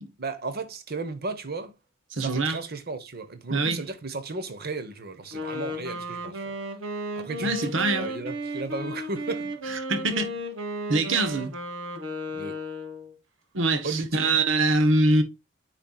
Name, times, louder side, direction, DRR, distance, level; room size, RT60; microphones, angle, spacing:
voice 1, 0.2-1.7 2.2-6.5 7.2-9.5 11.1-11.4 12.3-12.6 13.8-14.3, right 3 dB, 50° right, 1.1 m, -35 dB
voice 2, 2.1-2.6 3.5-3.8 7.4-8.1 9.7-10.4 10.9-11.5 13.5-15.2, right 2 dB, 70° right, 1.3 m, -24 dB
Wind instrument woodwind instrument, 5.2-13.1, equal, 90° right, 1.8 m, -34 dB
9.6 x 4.6 x 2.4 m
head